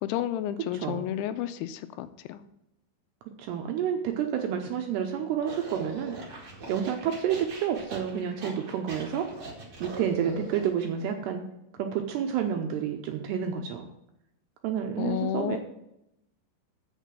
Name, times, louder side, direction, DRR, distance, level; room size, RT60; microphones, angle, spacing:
voice 1, 0.0-2.4 15.0-15.6, left 12 dB, 80° left, 12 dB, 2.8 m, -31 dB
voice 2, 0.7-1.0 3.4-6.2 6.7-9.3 9.8-11.4 11.8-13.9 14.6-15.6, right 8 dB, 80° right, 4 dB, 2.5 m, -29 dB
sound 1, 5.4-10.9, right 2 dB, 50° right, 1.3 m, -41 dB
8.2 x 6.5 x 7.4 m, 0.83 s
omnidirectional pair, 5.5 m